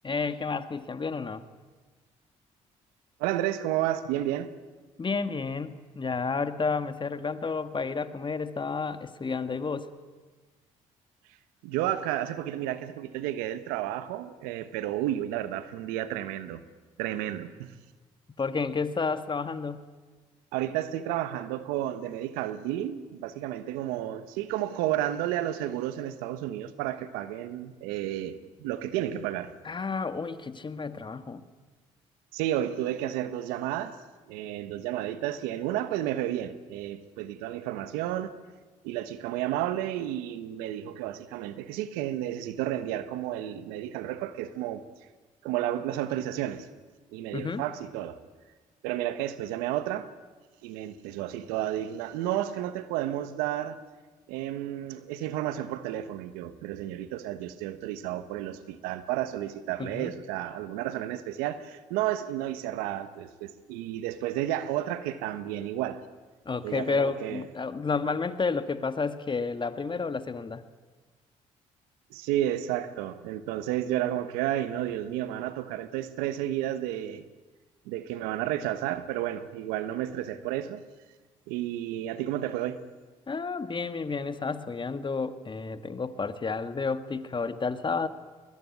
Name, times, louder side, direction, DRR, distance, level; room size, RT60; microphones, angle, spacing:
voice 1, 0.0-1.4 5.0-9.9 18.4-19.9 29.7-31.4 47.3-47.7 59.8-60.1 66.5-70.6 83.3-88.1, left 4 dB, 35° left, 1.8 m, -31 dB
voice 2, 3.2-4.5 11.6-16.6 17.0-17.7 20.5-29.5 32.3-34.0 34.3-38.3 38.8-44.8 45.4-46.7 47.1-48.2 48.8-50.1 50.6-53.8 54.3-66.0 66.6-67.4 72.1-77.2 77.8-80.8 81.5-82.8, right 12 dB, 90° right, 1.3 m, -32 dB
21.5 x 21.5 x 9.6 m
supercardioid pair, 60°, 15 cm